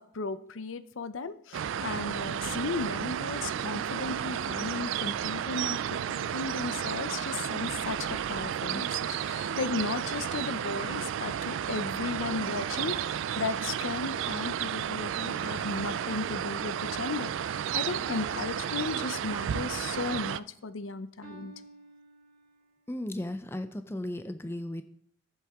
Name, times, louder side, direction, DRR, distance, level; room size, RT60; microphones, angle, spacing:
voice 1, 0.1-21.5, left 4 dB, 70° left, 13 dB, 0.6 m, -35 dB
sound 1, 1.5-20.4, right 9 dB, 70° right, 0.3 m, -32 dB
sound 2, 12.2-14.0 15.4-17.0 18.2-19.8 21.2-22.8, equal, 40° right, 1.7 m, -53 dB
voice 2, 22.9-24.8, left 1 dB, 10° left, 10 dB, 0.4 m, -35 dB
14.0 x 7.4 x 3.5 m, 0.67 s
head